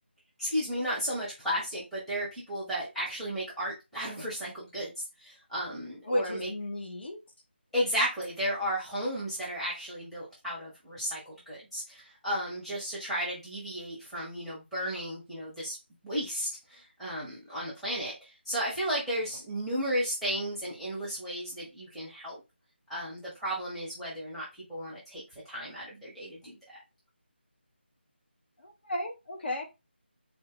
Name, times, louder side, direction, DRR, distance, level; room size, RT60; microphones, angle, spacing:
voice 1, 0.4-4.9 5.2-6.5 7.7-15.8 16.0-22.4 22.9-24.4 24.7-26.5, equal, ahead, 0.8 m, -34 dB
voice 2, 6.0-7.2 28.6-29.6, left 1 dB, 60° left, 1.5 m, -33 dB
4.3 x 2.6 x 3.7 m
figure-of-eight pair, 170°, 6 cm